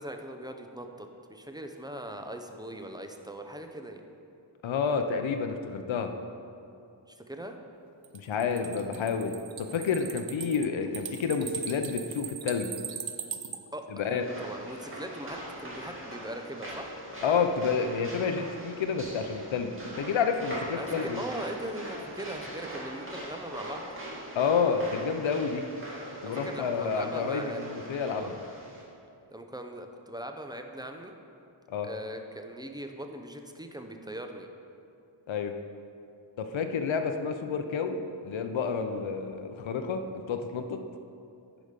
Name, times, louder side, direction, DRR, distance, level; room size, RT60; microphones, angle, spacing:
voice 1, 0.0-4.0 7.3-7.6 13.7-16.9 20.8-23.9 26.2-27.7 28.1-28.4 29.3-31.1 31.8-34.5, right 1 dB, 10° right, 5 dB, 0.7 m, -40 dB
voice 2, 4.6-6.1 8.1-12.7 13.9-14.3 17.2-21.2 24.3-25.6 26.2-28.4 31.7-31.9 35.3-35.5 36.4-38.0 38.2-40.0 40.3-40.8, left 5 dB, 70° left, 6 dB, 0.7 m, -29 dB
sound 1, 8.0-13.6, right 8 dB, 70° right, 0.7 m, -39 dB
sound 2, 14.2-28.8, right 1 dB, 25° right, 2.1 m, -42 dB
10.5 x 5.0 x 5.2 m, 2.6 s
wide cardioid pair, 65°, 48 cm